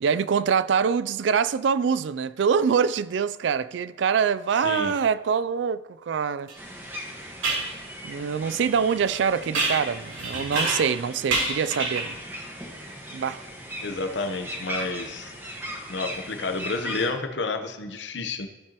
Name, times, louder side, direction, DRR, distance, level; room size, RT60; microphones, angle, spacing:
voice 1, 0.0-6.5 8.0-12.2 13.1-13.4, right 6 dB, 65° right, 0.3 m, -24 dB
voice 2, 4.6-4.9 13.8-15.3 15.9-18.5, left 3 dB, 65° left, 0.8 m, -30 dB
sound 1, 6.5-17.1, equal, 10° right, 1.4 m, -39 dB
sound 2, 6.5-6.6 7.4-7.7 9.5-11.0 11.3-12.2, right 3 dB, 80° right, 2.7 m, -27 dB
14.5 x 6.8 x 2.9 m
head